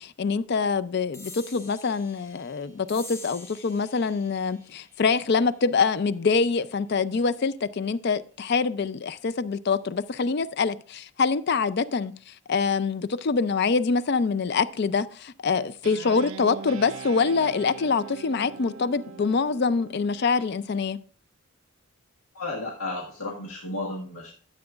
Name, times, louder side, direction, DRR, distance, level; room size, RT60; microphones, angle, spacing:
voice 1, 0.0-21.0, left 4 dB, 50° left, 0.4 m, -25 dB
sound 1, 1.1-8.0, left 1 dB, 15° left, 1.5 m, -48 dB
Guitar, 15.8-20.6, right 6 dB, 65° right, 0.4 m, -41 dB
voice 2, 22.3-24.3, left 2 dB, 85° left, 1.6 m, -33 dB
13.0 x 7.8 x 2.4 m
head